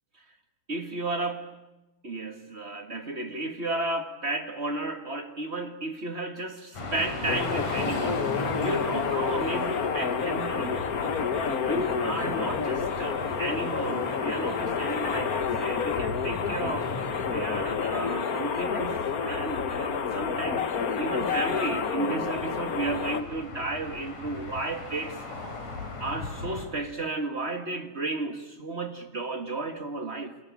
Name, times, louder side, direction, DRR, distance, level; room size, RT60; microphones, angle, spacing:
voice 1, 0.7-1.5 2.0-8.3 8.6-10.8 11.6-16.9 17.3-20.7 21.0-25.2 26.0-30.4, right 2 dB, 35° right, 7 dB, 1.1 m, -33 dB
sound 1, 6.7-26.7, left 3 dB, 55° left, 5.2 m, -38 dB
sound 2, 7.3-23.2, left 6 dB, 90° left, 0.7 m, -29 dB
29.0 x 24.0 x 8.5 m, 1.0 s
omnidirectional pair, 3.8 m